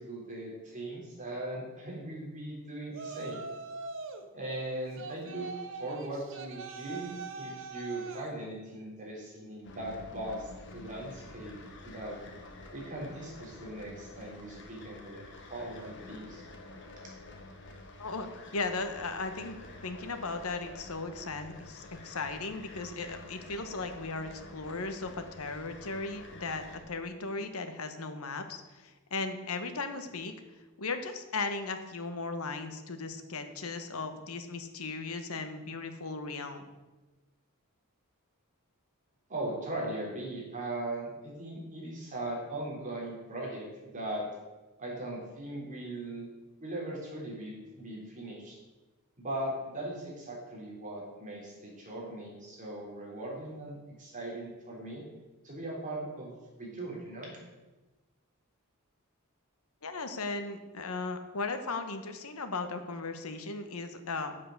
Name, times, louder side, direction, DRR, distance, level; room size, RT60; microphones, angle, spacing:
voice 1, 0.0-3.4 4.3-5.5 5.7-12.2 12.7-16.4 39.3-44.3 44.8-46.3 46.6-48.6 49.2-55.0 55.4-57.3, right 1 dB, 35° right, -3 dB, 3.7 m, -39 dB
Yell, 2.9-4.3 5.0-8.3, right 4 dB, 60° right, 1.0 m, -42 dB
sound 1, 9.6-26.8, left 2 dB, 55° left, 1.5 m, -49 dB
voice 2, 18.0-30.3 30.8-36.7 59.8-64.4, left 3 dB, 80° left, 7 dB, 1.2 m, -37 dB
8.6 x 7.5 x 6.6 m, 1.2 s
head